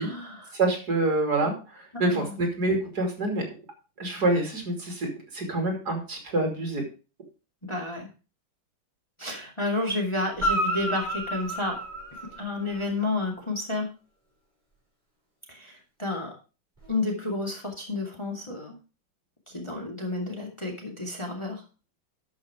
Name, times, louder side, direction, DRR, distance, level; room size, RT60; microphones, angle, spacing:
voice 1, 0.0-0.5 2.0-2.4 7.6-8.1 9.2-11.8 12.4-13.9 15.5-16.3 16.9-18.7 19.5-21.6, left 2 dB, 15° left, -1 dB, 2.3 m, -31 dB
voice 2, 0.5-3.4 4.0-6.8, right 2 dB, 50° right, 2 dB, 3.1 m, -27 dB
Guitar, 10.3-12.9 16.8-16.9, right 1 dB, 20° right, 5.7 m, -30 dB
12.5 x 6.2 x 4.9 m, 0.33 s
omnidirectional pair, 2.2 m